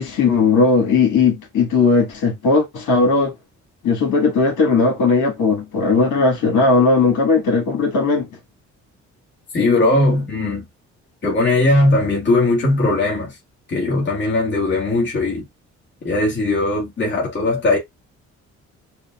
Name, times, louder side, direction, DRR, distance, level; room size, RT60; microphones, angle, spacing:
voice 1, 0.0-3.3 3.8-8.3, left 4 dB, 80° left, 1.6 m, -17 dB
voice 2, 9.5-10.6 11.2-13.4 13.7-15.4 16.0-17.8, left 2 dB, 35° left, 1.7 m, -18 dB
6.6 x 2.4 x 2.4 m
cardioid pair, 90°, 30 cm